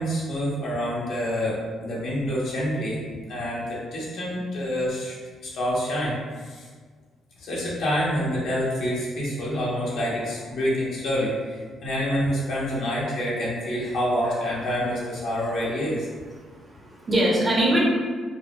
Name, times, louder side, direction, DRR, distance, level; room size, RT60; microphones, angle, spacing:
voice 1, 0.0-5.1 5.4-6.7 7.4-16.1, equal, 75° left, -6 dB, 1.0 m, -27 dB
voice 2, 16.4-17.8, right 1 dB, 30° right, -4 dB, 0.8 m, -23 dB
3.9 x 2.2 x 2.3 m, 1.5 s
cardioid pair, 90°, 0 cm